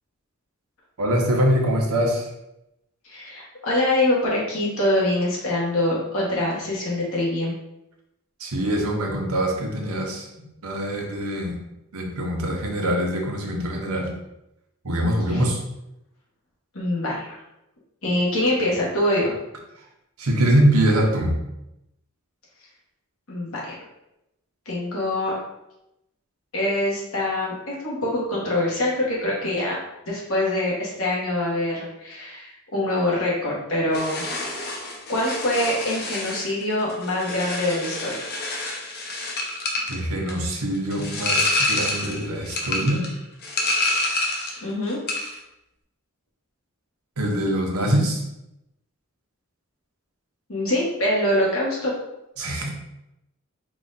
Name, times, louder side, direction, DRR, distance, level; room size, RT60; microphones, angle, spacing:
voice 1, 1.0-2.3 8.4-10.3 10.6-11.6 11.9-14.1 14.8-15.6 20.2-21.4 39.9-43.0 47.2-48.2 52.4-52.7, right 1 dB, 85° right, 0 dB, 0.9 m, -23 dB
voice 2, 3.0-7.5 15.3-15.4 16.7-17.4 18.0-19.4 23.3-23.7 24.6-25.4 26.5-34.2 34.8-38.2 44.6-45.0 50.5-51.9, left 1 dB, 70° left, -4 dB, 1.5 m, -24 dB
sound 1, 33.9-44.6 44.9-45.4, left 2 dB, 50° left, 0.8 m, -28 dB
4.8 x 2.5 x 4.0 m, 0.88 s
head